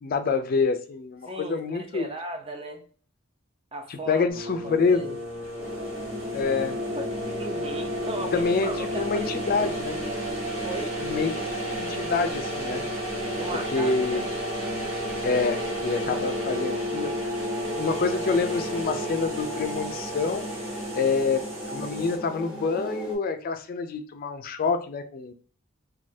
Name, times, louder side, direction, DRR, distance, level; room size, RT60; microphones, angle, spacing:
voice 1, 0.0-2.1 3.9-5.2 6.3-6.8 8.3-10.0 11.0-11.4 11.7-12.8 13.5-14.2 15.2-17.3 17.7-20.5 20.9-25.3, left 4 dB, 50° left, 0.4 m, -27 dB
voice 2, 1.2-2.8 3.7-4.3 4.6-5.1 7.0-7.1 7.4-9.7 10.2-10.3 10.6-11.0 13.3-14.2 21.0-21.2, right 1 dB, 30° right, 0.5 m, -37 dB
sound 1, 4.3-22.2, equal, 80° right, 1.1 m, -33 dB
sound 2, 5.6-23.2, equal, 5° right, 1.0 m, -36 dB
3.2 x 2.3 x 2.6 m
head